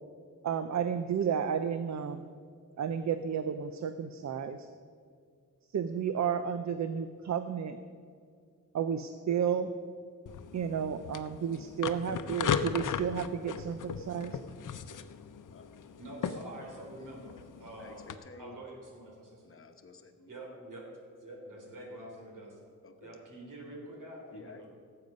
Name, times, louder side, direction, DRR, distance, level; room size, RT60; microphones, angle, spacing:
voice 1, 0.4-2.2 2.8-4.7 5.7-7.8 8.7-9.7 10.5-14.4, right 7 dB, 60° right, 10 dB, 0.5 m, -32 dB
sound 1, 10.3-18.2, left 7 dB, 75° left, 0.7 m, -37 dB
voice 2, 15.9-18.1 18.4-19.4 20.3-20.9 21.2-22.6 23.0-24.7, right 1 dB, 80° right, 0 dB, 3.2 m, -46 dB
voice 3, 17.8-18.6 19.4-20.4 22.8-23.2 24.3-24.6, left 4 dB, 45° left, 6 dB, 1.0 m, -52 dB
17.0 x 7.8 x 5.3 m, 2.1 s
wide cardioid pair, 145°, 31 cm